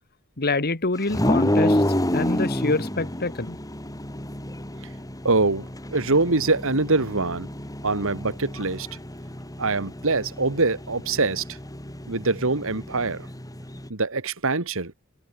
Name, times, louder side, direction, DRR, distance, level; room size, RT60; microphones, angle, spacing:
voice 1, 0.4-1.8 2.1-3.6, left 3 dB, 45° left, 1.9 m, -26 dB
sound 1, 1.1-13.9, left 1 dB, 15° left, 4.6 m, -29 dB
voice 2, 5.2-5.7 5.9-7.5 7.8-8.9 9.6-11.4 12.1-13.3 13.9-14.9, right 3 dB, 70° right, 2.2 m, -24 dB
head